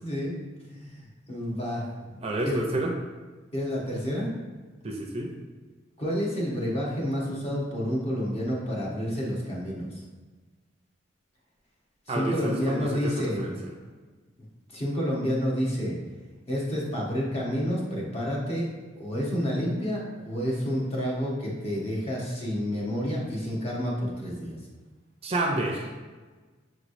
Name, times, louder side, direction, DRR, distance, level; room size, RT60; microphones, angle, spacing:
voice 1, 0.0-0.4 0.7-2.6 3.5-4.3 6.0-10.0 12.1-13.5 14.7-16.0 16.5-18.7 19.0-24.6, equal, 35° left, -4 dB, 1.0 m, -29 dB
voice 2, 2.2-2.9 4.8-5.3 12.1-13.5 25.2-25.9, right 1 dB, 30° right, 0 dB, 0.5 m, -29 dB
6.2 x 3.1 x 2.5 m, 1.3 s
head